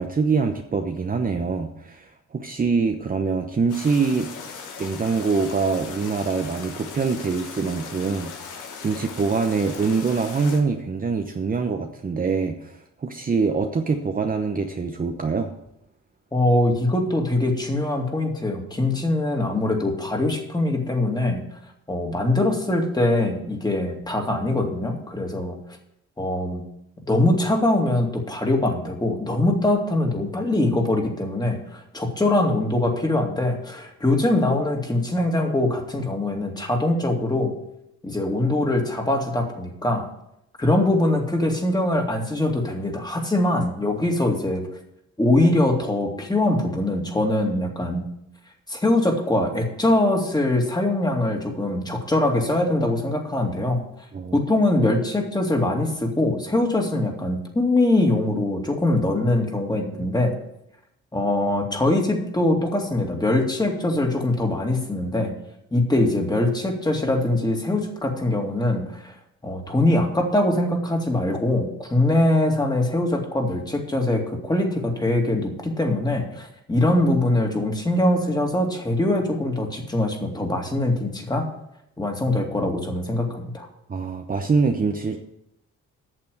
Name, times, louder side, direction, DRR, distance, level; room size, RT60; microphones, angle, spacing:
voice 1, 0.0-4.3 4.8-15.5 54.1-54.4 83.9-85.2, right 4 dB, 30° right, 4 dB, 0.9 m, -24 dB
sound 1, 3.7-10.6, left 5 dB, 80° left, 1.7 m, -38 dB
voice 2, 16.3-21.4 21.9-25.6 26.2-26.6 27.1-37.5 38.0-40.1 40.6-44.7 45.2-48.0 48.7-53.8 54.3-60.4 61.1-65.3 65.7-69.1 69.4-81.5 82.0-83.7, left 1 dB, 15° left, 2 dB, 2.4 m, -22 dB
8.8 x 6.8 x 7.9 m, 0.79 s
cardioid pair, 90°, 30 cm